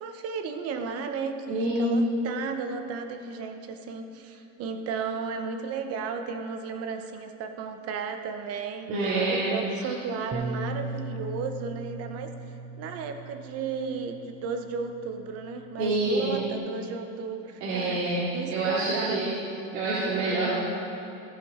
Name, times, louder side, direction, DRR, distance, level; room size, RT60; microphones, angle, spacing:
voice 1, 0.0-8.9 9.3-12.3 12.7-19.4, right 5 dB, 40° right, 6 dB, 1.0 m, -34 dB
voice 2, 1.5-2.1 8.9-9.6 15.8-16.4 17.6-19.3 19.7-20.6, right 2 dB, 70° right, -9 dB, 2.7 m, -26 dB
Bass guitar, 10.3-16.6, right 2 dB, 15° right, 0.4 m, -39 dB
16.5 x 5.8 x 5.1 m, 2.9 s
supercardioid pair, 140°, 39 cm